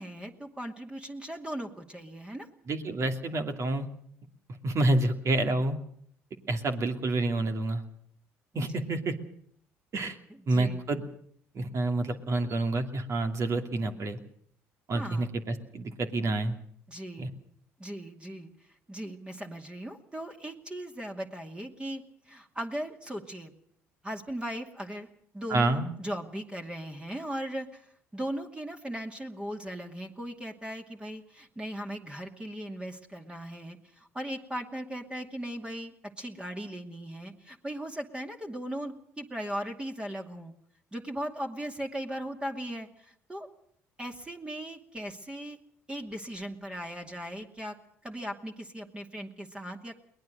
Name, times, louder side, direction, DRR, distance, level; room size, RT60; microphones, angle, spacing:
voice 1, 0.0-2.5 8.7-9.0 10.3-10.8 14.9-15.3 16.9-17.3 17.8-18.5 18.9-23.5 24.0-25.1 25.3-27.9 28.1-40.5 40.9-43.5 44.0-45.6 45.9-47.8 48.0-49.9, right 1 dB, 15° right, 3 dB, 2.5 m, -38 dB
voice 2, 2.7-3.9 4.6-5.8 6.5-7.8 8.5-9.1 9.9-10.2 10.5-11.0 11.5-14.2 14.9-16.6 17.2-17.3 25.5-25.9, right 2 dB, 50° right, 5 dB, 2.7 m, -28 dB
22.5 x 19.0 x 6.6 m, 0.66 s
hypercardioid pair, 65°, 7 cm